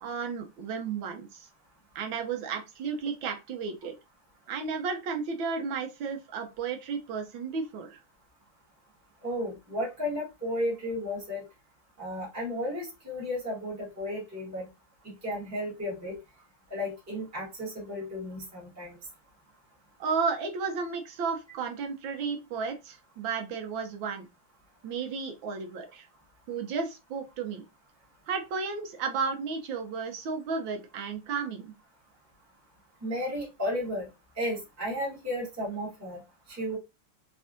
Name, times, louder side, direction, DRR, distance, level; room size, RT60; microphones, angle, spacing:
voice 1, 0.0-1.5 1.9-3.9 4.5-8.0 20.0-24.3 24.8-26.1 26.5-27.7 28.3-31.7, right 5 dB, 70° right, 4 dB, 1.3 m, -33 dB
voice 2, 9.2-11.4 12.0-14.7 15.0-16.2 16.7-19.0 33.0-34.1 34.3-36.2 36.5-36.8, left 1 dB, 10° right, -6 dB, 1.2 m, -33 dB
3.6 x 3.2 x 2.5 m, 0.25 s
omnidirectional pair, 2.4 m